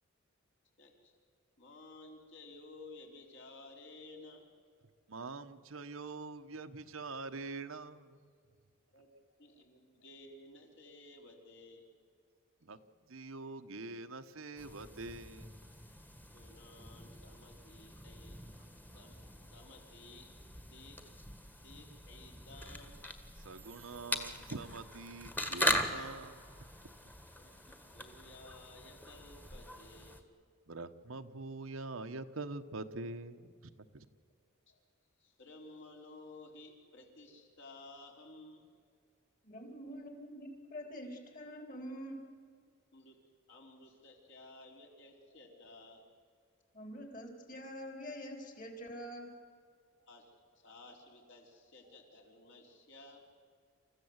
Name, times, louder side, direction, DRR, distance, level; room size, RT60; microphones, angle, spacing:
voice 1, 0.8-1.1 1.6-4.5 8.9-9.1 9.4-11.9 16.3-18.6 18.9-20.3 20.7-21.0 21.6-23.0 27.4-30.2 34.7-34.8 35.2-38.6 42.9-43.2 43.5-46.0 50.0-50.2 50.5-53.3, left 2 dB, 60° left, 1 dB, 4.3 m, -55 dB
voice 2, 5.1-8.3 9.1-9.2 12.6-12.8 13.1-15.5 23.4-26.5 30.7-33.5 33.9-34.1, right 3 dB, 80° right, 8 dB, 1.1 m, -44 dB
sound 1, 14.6-30.2, equal, 10° left, 1.5 m, -41 dB
voice 3, 39.4-42.2 46.7-49.3, equal, 40° left, 4 dB, 3.8 m, -45 dB
28.5 x 15.0 x 8.1 m, 2.1 s
head